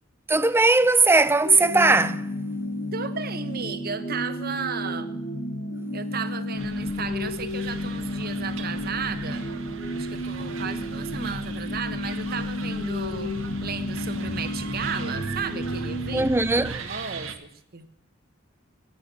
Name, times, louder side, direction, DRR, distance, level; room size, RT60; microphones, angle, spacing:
voice 1, 0.3-2.3 16.1-16.8, right 3 dB, 10° right, 0.5 m, -19 dB
sound 1, 1.4-16.2, left 1 dB, 55° left, 1.9 m, -32 dB
voice 2, 2.9-5.2 5.9-9.5 9.9-13.3 13.6-16.3 16.8-17.9, right 5 dB, 45° right, 1.2 m, -34 dB
sound 2, 6.6-17.3, right 3 dB, 75° right, 1.5 m, -38 dB
15.5 x 10.5 x 6.9 m
head